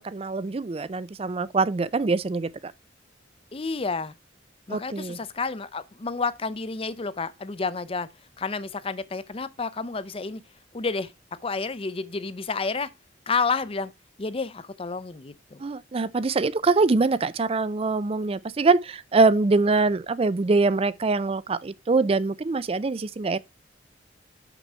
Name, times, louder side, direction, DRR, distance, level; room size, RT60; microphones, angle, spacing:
voice 1, 0.0-2.5 4.7-5.2 15.6-23.4, right 3 dB, 30° right, 0.4 m, -23 dB
voice 2, 3.5-4.2 4.7-8.1 8.4-10.4 10.7-11.1 11.4-12.9 13.3-13.9 14.2-15.6, left 4 dB, 30° left, 0.6 m, -30 dB
6.8 x 6.0 x 4.4 m
head